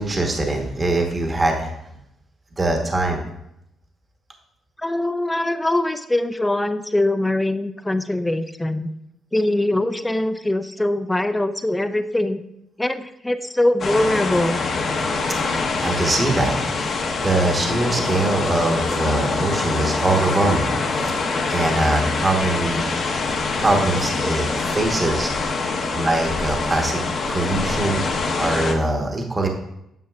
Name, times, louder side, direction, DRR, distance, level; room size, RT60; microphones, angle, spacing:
voice 1, 0.0-1.7 2.6-3.2 15.3-16.6 17.2-22.8 23.6-25.6 25.9-27.0 27.3-28.1 28.4-29.5, right 2 dB, 25° right, 2 dB, 1.1 m, -22 dB
voice 2, 4.8-8.9 9.3-12.4 12.8-14.7, left 1 dB, 10° left, 10 dB, 0.5 m, -22 dB
sound 1, 13.8-28.7, left 3 dB, 55° left, 1.0 m, -24 dB
9.3 x 6.9 x 2.4 m, 0.81 s
cardioid pair, 90°, 0 cm